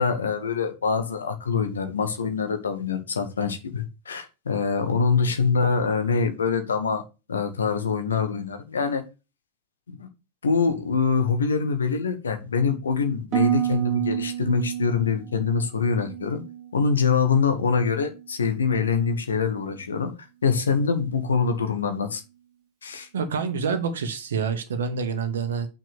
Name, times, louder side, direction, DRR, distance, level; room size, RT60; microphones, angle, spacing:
voice 1, 0.0-7.0 7.3-9.0 10.0-10.1 10.4-16.4 16.7-20.1 20.4-22.2 22.8-23.1, left 5 dB, 70° left, 1.5 m, -24 dB
Harp, 13.3-17.4 17.7-18.3 18.8-19.1, right 11 dB, 35° right, 1.5 m, -30 dB
voice 2, 23.1-25.7, right 6 dB, 65° right, 1.1 m, -27 dB
6.1 x 5.7 x 6.8 m
figure-of-eight pair, 90°, 0 cm